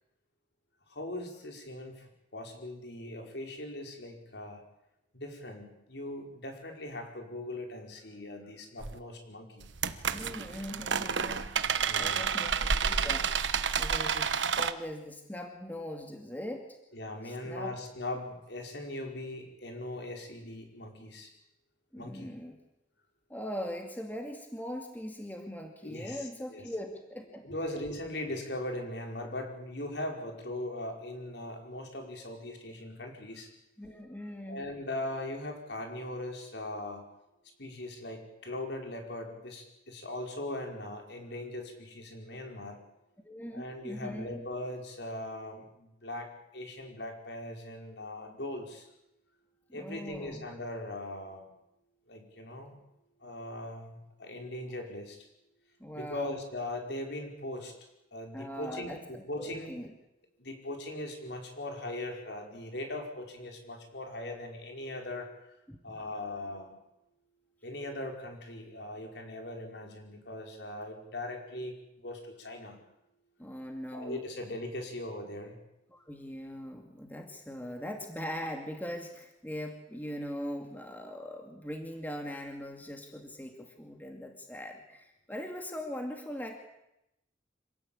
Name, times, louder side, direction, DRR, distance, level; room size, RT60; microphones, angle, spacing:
voice 1, 0.9-4.6 5.1-9.7 11.8-12.3 16.9-21.3 22.0-22.3 25.8-26.7 27.4-33.5 34.5-37.0 37.6-42.8 43.5-48.9 49.7-51.5 52.1-52.8 53.2-55.2 55.9-57.8 58.1-59.7 60.4-65.4 65.8-66.8 67.6-72.8 73.9-75.6, left 1 dB, 65° left, 3 dB, 5.1 m, -40 dB
sound 1, 8.8-9.0 9.6-14.7, right 6 dB, 80° right, 1.2 m, -30 dB
voice 2, 10.1-11.6 11.9-13.4 13.8-16.7 17.2-17.7 21.9-22.6 23.3-27.5 33.8-34.7 43.2-44.4 49.7-50.4 55.8-56.3 58.3-59.9 65.7-66.0 73.4-74.2 75.9-86.5, equal, 10° left, 3 dB, 2.3 m, -41 dB
26.5 x 17.5 x 8.8 m, 0.87 s
head